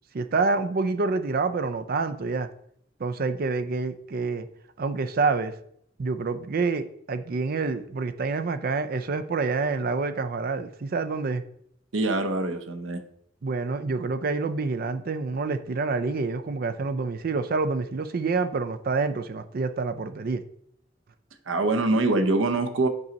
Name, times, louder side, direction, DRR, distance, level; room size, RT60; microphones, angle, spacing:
voice 1, 0.1-2.5 3.0-4.5 4.8-5.5 6.0-11.4 13.4-20.4, right 4 dB, 50° right, 11 dB, 0.4 m, -27 dB
voice 2, 11.9-13.0 21.5-22.9, right 2 dB, 85° right, 7 dB, 0.7 m, -24 dB
5.4 x 4.1 x 5.1 m, 0.71 s
head